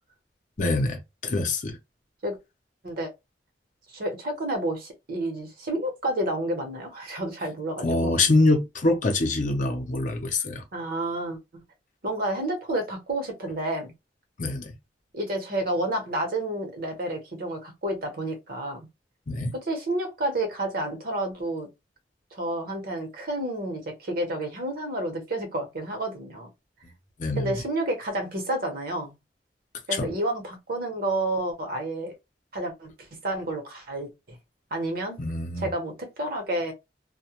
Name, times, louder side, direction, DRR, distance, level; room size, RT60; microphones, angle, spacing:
voice 1, 0.6-1.8 7.8-10.6 14.4-14.7 19.3-19.5 27.2-27.6 29.9-30.1 35.2-35.7, left 2 dB, 45° left, 0.6 m, -25 dB
voice 2, 3.9-8.1 10.7-11.4 12.0-13.9 15.1-18.9 19.7-21.7 22.3-26.5 27.4-29.2 29.9-32.2 32.5-34.4 34.7-35.2 35.6-36.7, right 1 dB, 55° right, 0.9 m, -30 dB
2.2 x 2.1 x 2.8 m
head